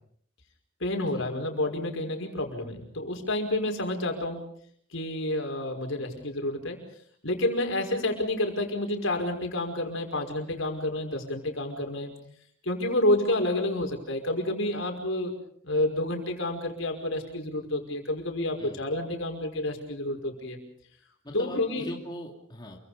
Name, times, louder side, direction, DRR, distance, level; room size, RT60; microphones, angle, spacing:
voice 1, 0.8-4.4 4.9-6.8 7.2-12.1 12.6-15.3 15.6-20.6 21.3-21.9, left 1 dB, 65° left, 4 dB, 5.6 m, -29 dB
voice 2, 21.2-22.8, left 1 dB, 20° left, 0 dB, 2.7 m, -41 dB
29.0 x 24.0 x 5.2 m, 0.64 s
head